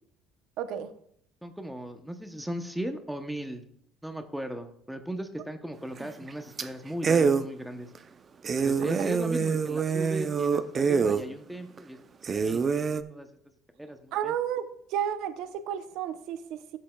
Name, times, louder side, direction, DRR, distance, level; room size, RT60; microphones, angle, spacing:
voice 1, 0.6-0.9 8.8-8.9 14.1-16.8, right 9 dB, 70° right, 10 dB, 0.7 m, -32 dB
voice 2, 1.4-3.6 4.0-7.9 8.6-12.0 12.3-12.8 13.1-13.3 13.8-14.3, equal, 5° right, 6 dB, 0.8 m, -37 dB
sound 1, 6.0-6.3 6.6-6.7 7.0-7.4 7.9-8.0 8.4-11.2 11.8-11.9 12.2-13.0, right 5 dB, 30° right, 0.5 m, -25 dB
13.0 x 7.6 x 2.3 m, 0.67 s
cardioid pair, 115°, 0 cm